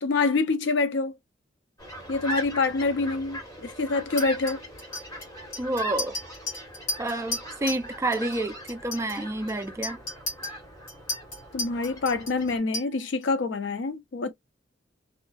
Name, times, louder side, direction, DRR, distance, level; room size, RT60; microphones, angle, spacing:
voice 1, 0.0-1.1 2.1-4.6 11.5-14.3, left 3 dB, 70° left, 0.4 m, -26 dB
sound 1, 1.8-12.6, equal, 20° left, 1.3 m, -40 dB
Chink clink, 4.2-7.9 8.1-8.4 8.7-13.2, left 2 dB, 50° left, 1.2 m, -35 dB
voice 2, 5.6-6.2 7.0-10.0, right 2 dB, 15° right, 0.3 m, -29 dB
2.5 x 2.3 x 2.3 m
head